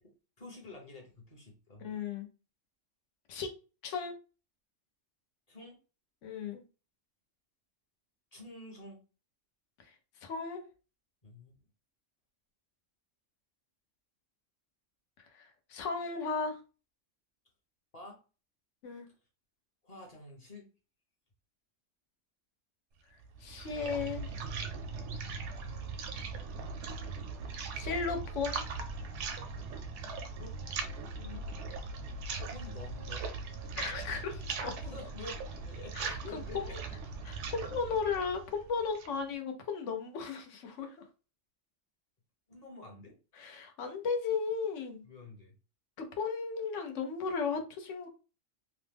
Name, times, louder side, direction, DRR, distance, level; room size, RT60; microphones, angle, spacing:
voice 1, 0.4-1.9 5.5-5.8 8.3-9.0 11.2-11.5 17.9-18.2 19.8-20.7 30.3-30.6 32.4-33.3 34.8-36.6 42.5-43.2 45.0-45.5, left 3 dB, 35° left, 0.9 m, -48 dB
voice 2, 1.8-2.3 3.3-3.5 3.8-4.2 6.2-6.6 10.2-10.6 15.3-16.6 18.8-19.1 23.4-24.3 27.7-28.6 31.2-31.4 33.8-34.7 35.9-36.8 37.2-41.0 43.4-45.0 46.0-48.1, left 5 dB, 75° left, 1.0 m, -35 dB
sound 1, 23.2-39.2, right 4 dB, 75° right, 0.9 m, -40 dB
3.0 x 2.0 x 3.3 m
omnidirectional pair, 1.3 m